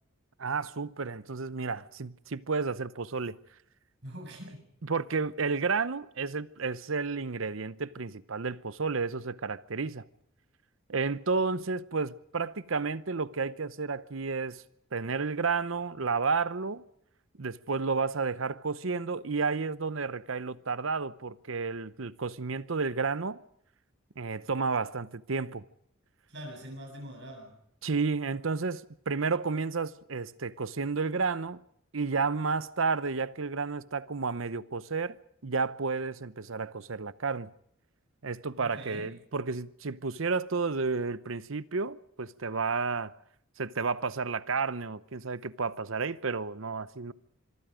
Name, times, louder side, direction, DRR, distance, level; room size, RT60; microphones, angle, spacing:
voice 1, 0.4-3.3 4.9-10.0 10.9-14.6 14.9-16.8 17.4-23.4 24.2-25.6 27.8-31.6 31.9-35.2 35.4-37.5 38.2-43.1 43.6-47.1, right 4 dB, 70° right, 0.8 m, -31 dB
voice 2, 4.0-4.7 26.3-27.6 38.6-39.2, equal, 55° right, 7.2 m, -43 dB
25.5 x 23.5 x 5.1 m
head